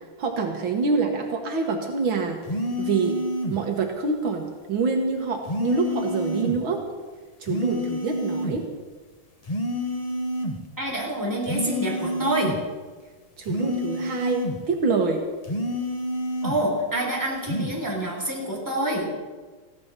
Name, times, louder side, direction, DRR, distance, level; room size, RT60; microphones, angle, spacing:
voice 1, 0.2-2.4 2.8-3.2 3.5-6.8 7.4-8.7 13.4-15.2, right 4 dB, 75° right, 3 dB, 2.2 m, -26 dB
sound 1, 2.5-3.6 5.5-6.6 7.5-8.6 9.5-10.6 11.4-12.6 13.5-14.6 15.4-16.6 17.4-17.8, equal, 25° left, 1.0 m, -28 dB
voice 2, 10.8-12.6 16.4-19.1, right 1 dB, 10° right, -3 dB, 4.1 m, -27 dB
15.5 x 11.5 x 6.6 m, 1.4 s
omnidirectional pair, 2.2 m